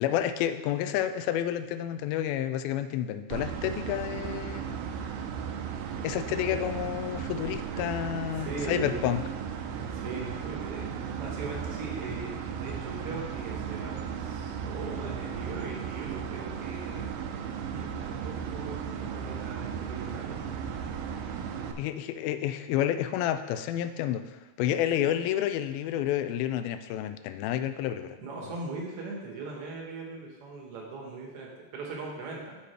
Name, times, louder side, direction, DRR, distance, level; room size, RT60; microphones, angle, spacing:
voice 1, 0.0-4.8 6.0-9.2 21.8-28.2, left 11 dB, 85° left, 10 dB, 2.2 m, -30 dB
sound 1, 3.3-21.7, right 7 dB, 80° right, 2.4 m, -35 dB
voice 2, 8.4-9.1 9.6-17.0 17.7-20.6 24.9-25.1 28.2-32.6, right 3 dB, 65° right, -1 dB, 1.5 m, -40 dB
14.0 x 4.9 x 3.3 m, 1.2 s
omnidirectional pair, 4.6 m